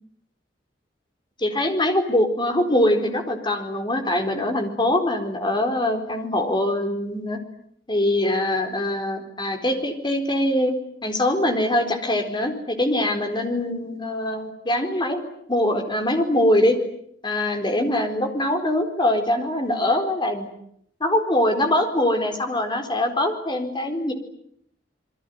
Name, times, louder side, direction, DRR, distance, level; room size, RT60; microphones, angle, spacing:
voice 1, 1.4-7.4 7.9-10.7 11.0-15.2 15.5-16.8 17.2-20.5 21.0-24.1, left 1 dB, 25° left, 6 dB, 4.2 m, -23 dB
28.0 x 22.5 x 9.5 m, 0.72 s
head